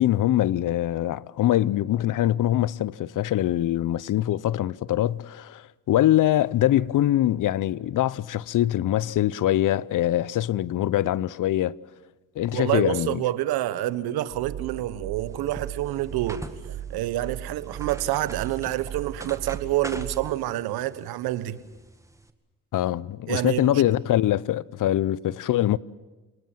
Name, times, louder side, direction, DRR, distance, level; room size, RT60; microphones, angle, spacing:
voice 1, 0.0-11.8 12.4-13.2 22.7-25.8, left 13 dB, 55° left, 0.7 m, -23 dB
voice 2, 12.5-16.4 16.9-21.6 23.3-23.8, right 14 dB, 75° right, 1.2 m, -27 dB
sound 1, 14.3-20.4, right 9 dB, 50° right, 1.5 m, -38 dB
sound 2, 15.2-22.3, right 1 dB, 10° right, 1.9 m, -45 dB
29.0 x 19.5 x 7.3 m
supercardioid pair, 60°, 38 cm